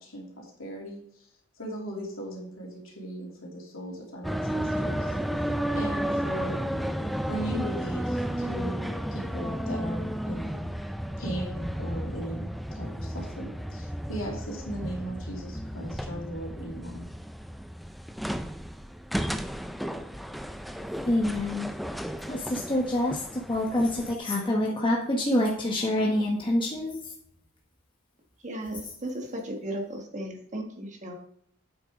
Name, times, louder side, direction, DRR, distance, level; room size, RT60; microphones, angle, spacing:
voice 1, 0.0-1.0 1.6-5.1 5.7-6.6 7.3-10.6 11.2-12.4 12.7-17.1, right 1 dB, 70° left, -2 dB, 2.7 m, -37 dB
sound 1, 4.2-24.2, equal, ahead, 0.3 m, -33 dB
voice 2, 21.1-21.7 22.3-27.0, left 1 dB, 25° left, -2 dB, 1.0 m, -26 dB
voice 3, 28.4-31.1, right 1 dB, 35° right, 2 dB, 1.4 m, -35 dB
8.4 x 6.3 x 3.6 m, 0.69 s
head